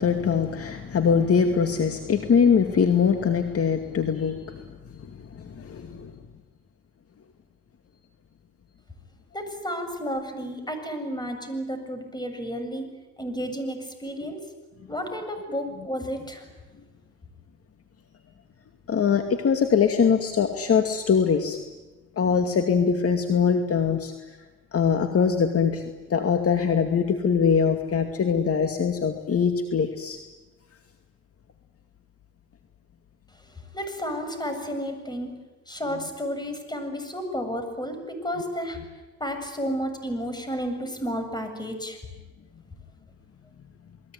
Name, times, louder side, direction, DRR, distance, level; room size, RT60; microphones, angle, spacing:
voice 1, 0.0-4.7 5.0-6.1 18.9-21.6 22.2-24.1 24.7-25.8 26.1-30.2, left 6 dB, 50° left, 6 dB, 2.4 m, -22 dB
voice 2, 9.3-12.9 13.2-14.4 14.9-16.5 33.4-35.3 35.7-38.8 39.2-42.0, equal, 15° left, 7 dB, 7.4 m, -32 dB
29.0 x 21.5 x 9.5 m, 1.2 s
cardioid pair, 90°, 30 cm